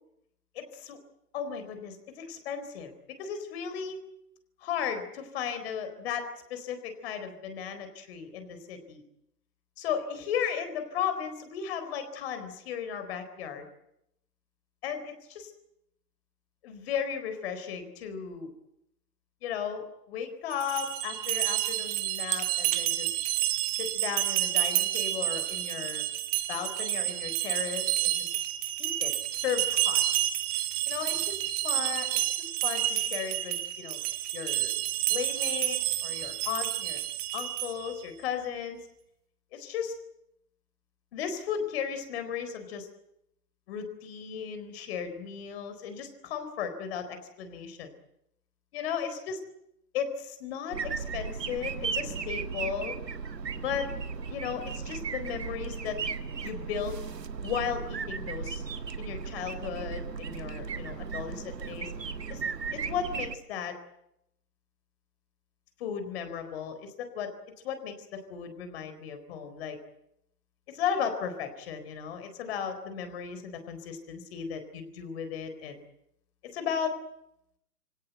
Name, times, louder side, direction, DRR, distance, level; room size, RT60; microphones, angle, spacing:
voice 1, 0.5-1.0 1.3-2.9 3.2-4.0 4.6-9.0 9.8-13.7 14.8-15.5 16.6-18.5 19.4-23.2 23.7-26.0 26.5-28.3 28.8-30.0 30.9-34.0 34.3-34.7 35.1-37.0 37.3-38.9 39.5-39.9 41.1-42.9 43.7-47.9 48.7-49.4 49.9-52.9 53.6-53.9 54.3-56.0 56.4-57.0 57.4-58.6 59.0-61.9 62.3-62.4 62.7-63.8 65.8-67.3 67.6-69.8 70.7-75.8 76.5-76.9, left 7 dB, 40° left, 9 dB, 4.2 m, -35 dB
sound 1, 20.5-38.0, right 15 dB, 20° right, 1.1 m, -30 dB
sound 2, 50.7-63.4, right 5 dB, 90° right, 1.7 m, -36 dB
25.5 x 17.5 x 9.1 m, 0.80 s
hypercardioid pair, 145°, 48 cm